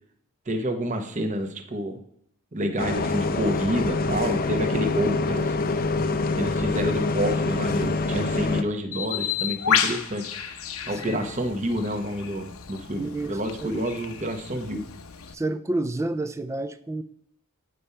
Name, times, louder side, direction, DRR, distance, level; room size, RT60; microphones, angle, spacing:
voice 1, 0.5-2.0 2.5-5.6 6.4-10.6 10.9-14.8, equal, 35° right, 6 dB, 0.9 m, -29 dB
Bus, 2.8-8.6, left 3 dB, 40° left, 0.5 m, -25 dB
Bird, 8.9-15.3, left 8 dB, 80° left, 0.8 m, -31 dB
voice 2, 10.8-11.2 13.0-13.8 15.3-17.0, right 2 dB, 15° right, 12 dB, 0.3 m, -30 dB
8.2 x 5.2 x 5.5 m, 0.69 s
head